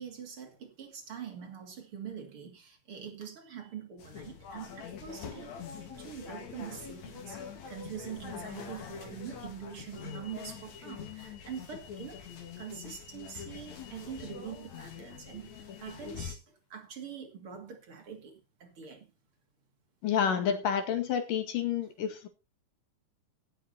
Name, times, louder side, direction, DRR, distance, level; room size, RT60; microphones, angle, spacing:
voice 1, 0.0-5.5 5.8-12.3 12.6-19.1, right 8 dB, 45° right, 3.2 m, -44 dB
sound 1, 4.0-16.4, left 7 dB, 60° left, 3.3 m, -44 dB
voice 2, 20.0-22.3, left 8 dB, 90° left, 3.6 m, -29 dB
16.5 x 7.5 x 4.3 m
omnidirectional pair, 3.7 m